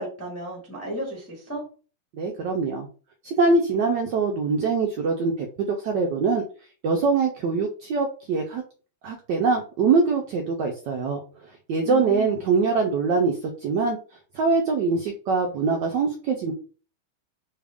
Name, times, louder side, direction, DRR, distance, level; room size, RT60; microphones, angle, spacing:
voice 1, 0.0-1.6 11.8-12.4, right 1 dB, 10° left, -4 dB, 0.7 m, -34 dB
voice 2, 2.1-2.9 3.2-6.4 6.8-8.6 9.0-11.2 11.7-14.0 14.3-16.5, right 4 dB, 75° right, 2 dB, 1.0 m, -23 dB
3.5 x 2.4 x 3.4 m, 0.37 s
omnidirectional pair, 2.4 m